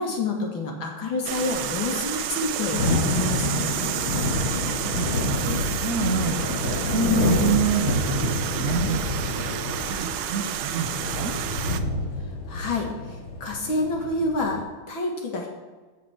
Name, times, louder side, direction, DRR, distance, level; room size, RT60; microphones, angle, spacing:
voice 1, 0.0-3.8 12.5-12.9 13.4-15.5, left 2 dB, 70° left, 1 dB, 2.5 m, -28 dB
sound 1, 1.2-11.8, right 10 dB, 85° right, 1.5 m, -30 dB
Thunder / Rain, 2.2-14.6, left 2 dB, 85° left, 2.5 m, -28 dB
voice 2, 4.7-9.5 9.9-11.3, right 5 dB, 55° right, 2 dB, 1.0 m, -29 dB
14.5 x 4.9 x 4.4 m, 1.3 s
omnidirectional pair, 2.3 m